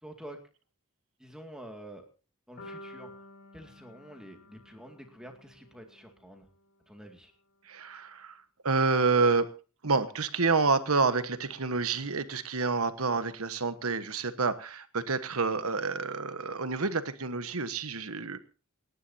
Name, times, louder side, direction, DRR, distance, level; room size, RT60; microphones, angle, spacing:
voice 1, 0.0-0.4 1.2-2.1 2.5-3.1 3.5-6.5 6.9-7.3, right 1 dB, 5° right, 3 dB, 2.2 m, -47 dB
sound 1, 2.6-6.7, left 1 dB, 50° left, 6.2 m, -51 dB
voice 2, 7.7-9.5 9.8-18.4, right 4 dB, 80° right, 11 dB, 1.3 m, -28 dB
28.5 x 11.0 x 2.8 m, 0.36 s
head